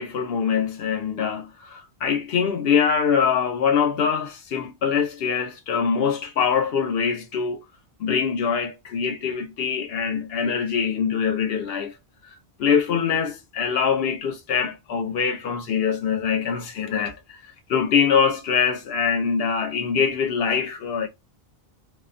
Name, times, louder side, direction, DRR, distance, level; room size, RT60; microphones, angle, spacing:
voice 1, 0.0-7.7 8.0-12.0 12.6-17.4 17.7-21.1, left 6 dB, 70° left, 0.8 m, -23 dB
2.8 x 2.1 x 2.4 m
omnidirectional pair, 1.0 m